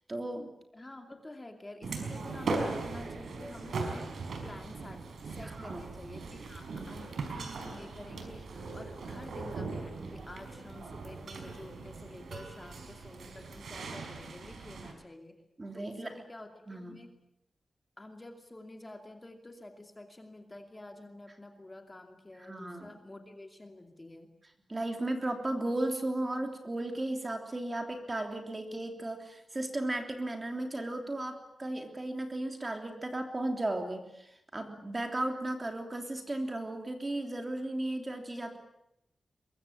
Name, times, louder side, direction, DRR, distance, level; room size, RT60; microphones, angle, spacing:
voice 1, 0.1-0.5 5.4-5.8 15.6-16.1 16.7-17.0 22.4-22.9 24.7-38.6, right 1 dB, 20° right, 4 dB, 3.2 m, -35 dB
voice 2, 0.7-15.4 15.7-17.1 18.0-24.3, left 2 dB, 20° left, 4 dB, 2.6 m, -49 dB
sound 1, 1.8-14.9, right 3 dB, 80° right, 5.0 m, -39 dB
23.5 x 22.5 x 8.7 m, 0.82 s
wide cardioid pair, 145°, 0 cm